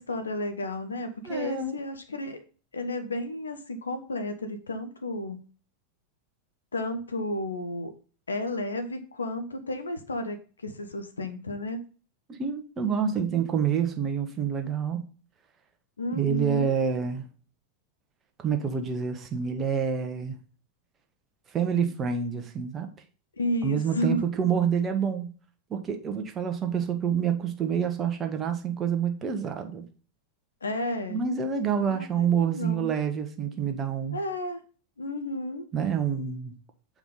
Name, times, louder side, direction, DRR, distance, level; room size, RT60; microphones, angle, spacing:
voice 1, 0.0-2.4 2.7-5.4 6.7-7.9 8.3-11.8 16.0-16.7 23.4-24.2 30.6-31.2 31.9-32.9 34.1-34.6 35.0-35.7, left 1 dB, 75° left, 0.8 m, -32 dB
voice 2, 1.2-1.8 12.3-15.1 16.1-17.3 18.4-20.4 21.5-22.9 23.6-25.3 25.7-29.8 31.1-34.2 35.7-36.6, right 7 dB, 25° right, 1.0 m, -27 dB
7.1 x 4.8 x 3.8 m
figure-of-eight pair, 90°, 0 cm